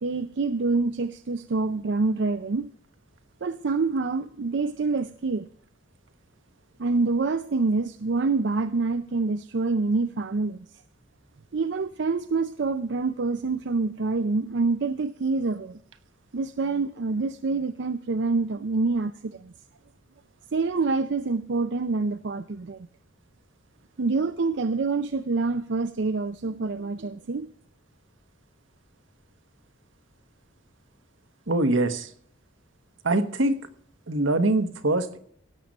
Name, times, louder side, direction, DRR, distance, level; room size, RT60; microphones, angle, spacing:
voice 1, 0.0-2.7 3.4-5.4 6.8-10.7 11.5-15.8 16.3-19.5 20.5-22.8 24.0-27.5, right 3 dB, 65° right, 11 dB, 0.5 m, -26 dB
voice 2, 31.5-32.1 33.0-33.6 34.1-35.2, right 2 dB, 80° right, 8 dB, 1.3 m, -23 dB
17.0 x 7.5 x 5.3 m, 0.63 s
head